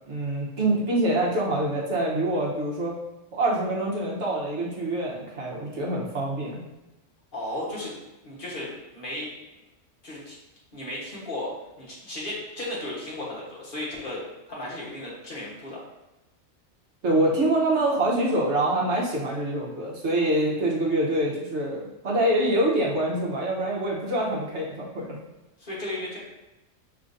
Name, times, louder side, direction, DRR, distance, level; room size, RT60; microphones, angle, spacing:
voice 1, 0.1-2.9 3.3-6.6 17.0-25.2, right 1 dB, 60° right, -3 dB, 1.2 m, -25 dB
voice 2, 7.3-7.9 8.2-9.3 10.0-10.4 10.7-15.8 25.6-26.2, left 1 dB, 40° left, -6 dB, 1.4 m, -35 dB
4.9 x 3.3 x 2.6 m, 1.0 s
omnidirectional pair, 1.4 m